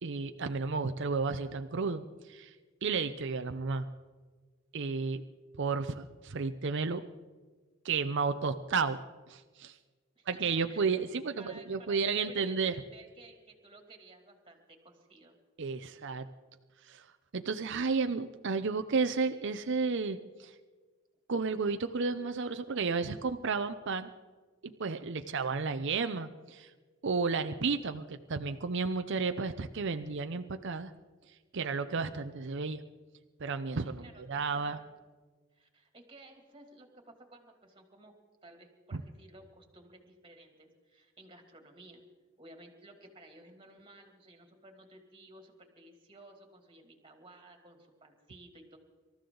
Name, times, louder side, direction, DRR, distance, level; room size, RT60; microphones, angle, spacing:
voice 1, 0.0-2.5 2.8-3.9 4.7-5.2 5.6-7.0 7.8-9.0 9.3-9.7 10.3-12.7 15.6-16.3 16.9-17.0 17.3-20.5 21.3-24.1 24.6-26.7 27.0-30.9 31.5-32.8 33.4-34.8 38.9-39.0, right 4 dB, 60° right, 8 dB, 0.7 m, -32 dB
voice 2, 10.2-11.0 11.4-15.4 34.0-34.9 35.5-38.1 38.4-42.0 42.4-48.8, right 2 dB, 25° right, 4 dB, 2.6 m, -55 dB
26.0 x 14.0 x 3.9 m, 1.4 s
head